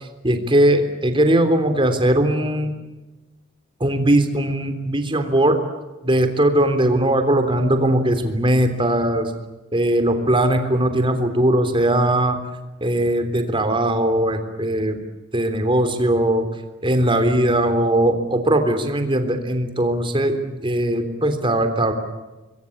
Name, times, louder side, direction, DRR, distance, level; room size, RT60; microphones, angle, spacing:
voice 1, 0.2-2.7 3.8-5.6 6.0-9.3 9.7-12.4 12.8-15.0 15.3-16.5 16.8-21.9, right 1 dB, 25° right, 8 dB, 3.4 m, -19 dB
26.5 x 22.5 x 8.5 m, 1.1 s
head